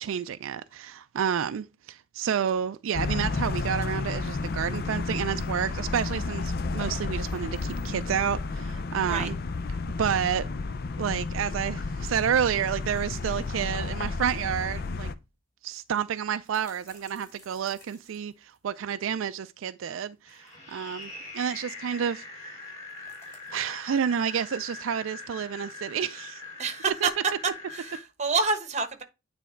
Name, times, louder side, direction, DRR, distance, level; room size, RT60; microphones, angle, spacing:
voice 1, 0.0-9.3 10.0-10.5 11.0-15.1 15.6-22.3 23.5-26.4 27.0-27.1, right 8 dB, 75° right, 0.4 m, -30 dB
sound 1, 2.9-15.1, left 3 dB, 50° left, 0.5 m, -32 dB
sound 2, 14.5-14.6 14.9-15.0 15.8-19.0 20.0-21.1 22.4-23.8, left 1 dB, 15° left, 3.5 m, -57 dB
sound 3, 20.3-28.0, left 3 dB, 30° left, 3.7 m, -42 dB
voice 2, 26.6-27.1 27.7-29.0, right 4 dB, 35° right, 1.1 m, -28 dB
9.2 x 3.4 x 4.3 m
head